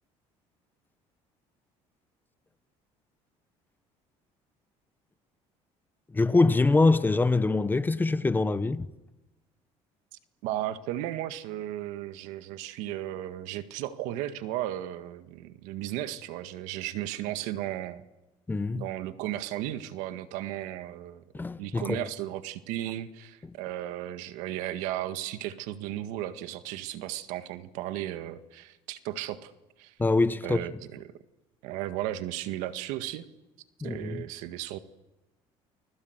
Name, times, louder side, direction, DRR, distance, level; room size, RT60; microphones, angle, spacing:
voice 1, 6.1-8.9 18.5-18.9 21.3-22.1 30.0-30.6 33.8-34.2, left 3 dB, 15° left, 1.2 m, -24 dB
voice 2, 10.4-18.0 18.7-21.2 21.6-29.5 29.8-29.9 30.4-31.1 31.6-33.3 33.8-34.8, right 13 dB, 85° right, 1.8 m, -35 dB
30.0 x 21.0 x 8.1 m
cardioid pair, 110°, 12 cm